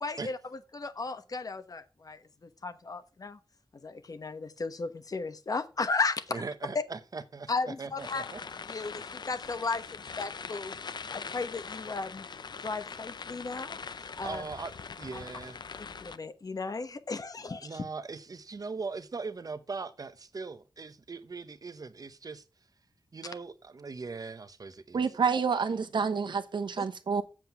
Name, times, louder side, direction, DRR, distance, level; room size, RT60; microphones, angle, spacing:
voice 1, 0.0-0.4 0.7-3.4 3.8-6.4 7.5-8.2 8.7-10.8 11.1-12.3 12.6-14.4 15.1-15.2 16.0-17.8 26.8-26.9, left 3 dB, 50° left, 1.1 m, -35 dB
voice 2, 6.3-8.4 14.2-15.6 17.6-22.4 23.1-25.0, right 4 dB, 50° right, 0.9 m, -40 dB
sound 1, 8.0-16.2, left 5 dB, 65° left, 0.6 m, -42 dB
voice 3, 24.9-27.2, right 5 dB, 80° right, 1.0 m, -28 dB
7.8 x 7.5 x 5.7 m
wide cardioid pair, 100°, 8 cm